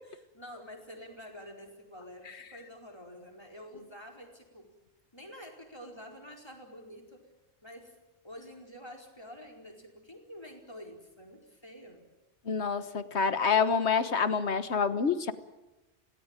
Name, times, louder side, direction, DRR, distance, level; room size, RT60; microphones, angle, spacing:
voice 1, 0.0-4.7 5.1-7.3 7.6-8.0 8.2-12.0, equal, 20° left, 1 dB, 4.6 m, -48 dB
voice 2, 12.4-15.3, left 5 dB, 70° left, 12 dB, 1.6 m, -27 dB
26.0 x 18.0 x 9.1 m, 1.0 s
omnidirectional pair, 1.2 m